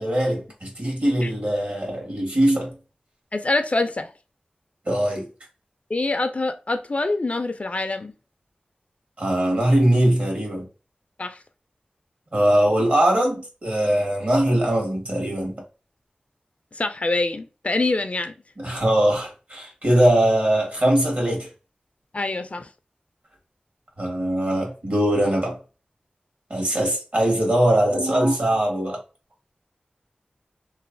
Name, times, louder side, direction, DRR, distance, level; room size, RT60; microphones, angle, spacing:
voice 1, 0.0-2.7 4.9-5.3 9.2-10.7 12.3-15.6 18.6-21.5 24.0-25.6 26.5-29.0, right 1 dB, 60° right, 1.5 m, -21 dB
voice 2, 3.3-4.1 5.9-8.1 11.2-11.4 16.7-18.3 22.1-22.7, left 2 dB, 45° left, 0.4 m, -25 dB
3.0 x 2.2 x 2.5 m
cardioid pair, 40°, 3 cm